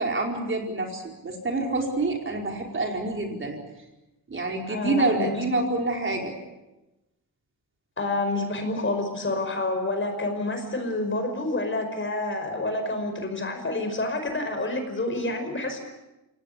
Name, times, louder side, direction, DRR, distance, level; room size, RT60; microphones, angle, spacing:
voice 1, 0.0-3.6 4.3-6.3, right 2 dB, 35° right, 1 dB, 4.8 m, -27 dB
voice 2, 4.7-5.3 8.0-15.8, left 2 dB, 35° left, 6 dB, 5.4 m, -28 dB
27.5 x 18.5 x 8.5 m, 1.0 s
cardioid pair, 110°, 36 cm